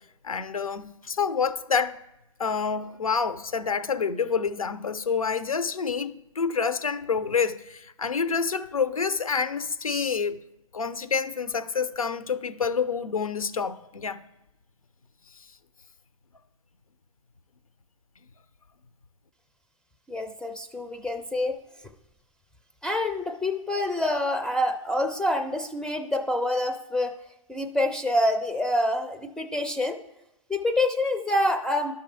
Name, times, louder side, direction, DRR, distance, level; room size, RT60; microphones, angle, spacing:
voice 1, 0.2-2.0 2.4-10.4 10.7-14.2, left 5 dB, 80° left, 0.7 m, -28 dB
voice 2, 20.1-21.6 22.8-27.1 27.5-30.0 30.5-31.9, left 1 dB, 5° left, 0.4 m, -26 dB
11.5 x 5.9 x 3.3 m
figure-of-eight pair, 120°, 18 cm